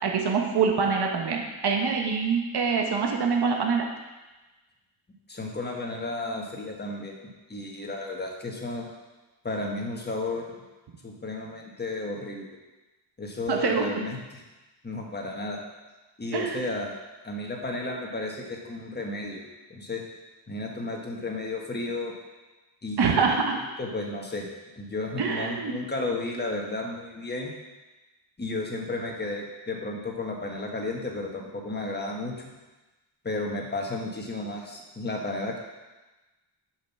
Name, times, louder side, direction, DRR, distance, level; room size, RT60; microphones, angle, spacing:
voice 1, 0.0-3.9 13.5-13.9 16.3-16.6 23.0-23.5 25.2-25.7, right 5 dB, 55° right, 1 dB, 1.2 m, -25 dB
voice 2, 5.3-7.2 7.5-8.9 9.4-10.5 11.0-12.6 13.2-14.4 14.8-15.6 16.2-16.9 17.2-19.4 19.7-20.0 20.5-22.1 22.8-23.4 23.8-24.5 24.8-27.5 28.4-32.5 33.2-35.6, left 2 dB, 20° left, 0 dB, 1.3 m, -33 dB
7.5 x 6.0 x 5.9 m, 1.1 s
wide cardioid pair, 155°, 48 cm